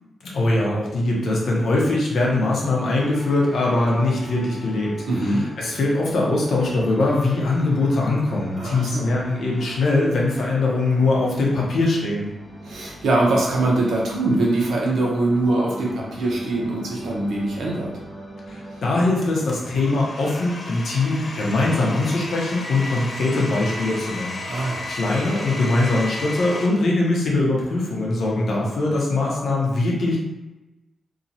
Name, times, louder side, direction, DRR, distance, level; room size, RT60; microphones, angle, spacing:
voice 1, 0.2-12.3 18.5-30.2, left 2 dB, 65° left, -3 dB, 0.8 m, -22 dB
sound 1, 3.0-19.5, right 1 dB, 25° right, 0.7 m, -40 dB
voice 2, 5.0-5.4 8.6-9.1 12.6-17.9 24.5-24.9, right 2 dB, 80° right, -2 dB, 0.7 m, -22 dB
Domestic sounds home sounds, 19.2-26.7, left 2 dB, 40° left, 0.5 m, -33 dB
2.9 x 2.3 x 2.7 m, 1.0 s
wide cardioid pair, 125°, 0 cm